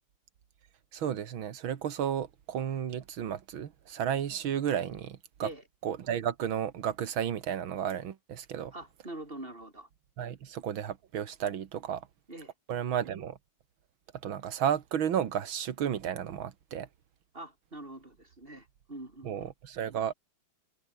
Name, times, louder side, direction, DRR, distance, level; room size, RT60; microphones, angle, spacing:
voice 1, 0.9-5.5 5.8-8.7 10.2-12.1 12.7-13.4 14.2-16.9 19.2-20.1, right 9 dB, 80° right, 2.3 m, -33 dB
voice 2, 8.7-9.9 12.3-12.5 17.3-19.5, right 1 dB, 25° right, 5.0 m, -44 dB
omnidirectional pair, 2.2 m